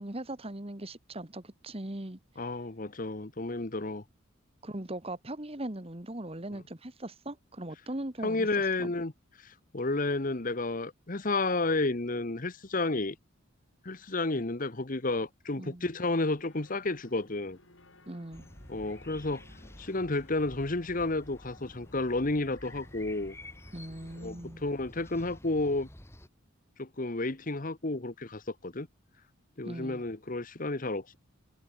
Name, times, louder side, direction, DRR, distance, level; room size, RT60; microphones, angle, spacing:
voice 1, 0.0-2.2 4.6-8.5 8.8-8.9 15.6-15.9 18.1-18.5 23.7-24.6 29.7-30.0, right 1 dB, 30° right, 1.7 m, -39 dB
voice 2, 2.4-4.0 8.2-9.1 9.4-13.1 13.8-17.6 18.7-19.4 19.8-23.3 24.2-25.9 26.8-28.9 29.6-31.2, left 2 dB, 40° left, 1.3 m, -31 dB
sound 1, 16.3-24.3, left 2 dB, 70° left, 6.7 m, -60 dB
sound 2, 18.3-26.3, left 1 dB, 15° left, 2.4 m, -50 dB
head